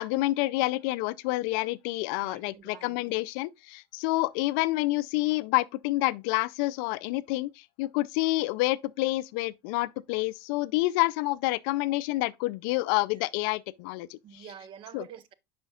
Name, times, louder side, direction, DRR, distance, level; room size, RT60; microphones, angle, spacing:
voice 1, 0.0-7.5 7.8-14.4 14.9-15.1, left 19 dB, 65° left, 0.4 m, -28 dB
voice 2, 2.2-3.2 14.2-15.3, right 9 dB, 45° right, 0.7 m, -47 dB
9.5 x 5.1 x 2.3 m
supercardioid pair, 120°, 12 cm